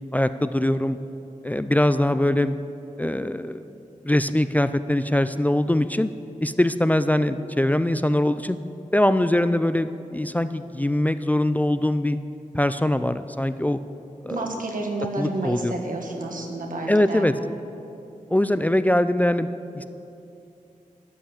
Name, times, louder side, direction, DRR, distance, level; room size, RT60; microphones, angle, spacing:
voice 1, 0.1-1.0 1.4-2.6 3.0-3.6 4.0-6.1 6.4-8.6 8.9-12.2 12.5-13.8 14.2-14.4 15.2-15.7 16.9-17.3 18.3-19.9, left 1 dB, 10° left, 12 dB, 0.3 m, -22 dB
voice 2, 14.3-17.3, right 2 dB, 85° right, 2 dB, 1.5 m, -30 dB
12.5 x 5.6 x 8.7 m, 2.8 s
wide cardioid pair, 95°, 14 cm